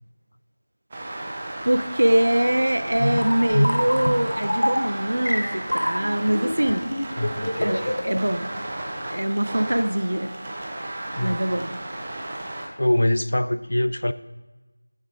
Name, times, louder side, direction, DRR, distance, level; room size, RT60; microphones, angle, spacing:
sound 1, 0.9-12.7, right 1 dB, 15° right, 0.5 m, -34 dB
voice 1, 1.6-6.9 7.6-8.4 9.1-10.3 11.2-11.7, right 1 dB, 65° right, 10 dB, 0.5 m, -23 dB
sound 2, 2.9-8.2, equal, 85° left, 0.9 m, -25 dB
voice 2, 7.2-8.0 11.1-11.5 12.8-14.1, left 1 dB, 55° left, 13 dB, 0.3 m, -24 dB
9.5 x 3.4 x 5.0 m, 1.2 s
figure-of-eight pair, 180°, 0 cm